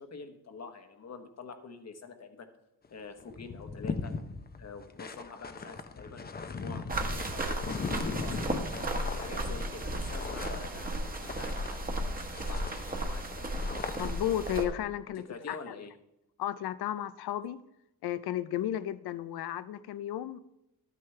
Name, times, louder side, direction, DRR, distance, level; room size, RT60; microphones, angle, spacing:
voice 1, 0.0-2.5 2.9-4.1 4.6-8.6 9.1-12.2 12.5-13.5 15.1-15.9, left 4 dB, 45° left, 6 dB, 1.1 m, -46 dB
sound 1, 2.8-2.9 3.2-12.1 12.3-14.3, left 4 dB, 25° left, 0.6 m, -39 dB
sound 2, 6.9-14.7, right 1 dB, 25° right, 1.2 m, -34 dB
voice 2, 14.0-15.6 16.4-17.6 18.0-20.4, left 12 dB, 90° left, 15 dB, 0.6 m, -33 dB
12.5 x 9.2 x 3.3 m, 0.87 s
cardioid pair, 115°, 37 cm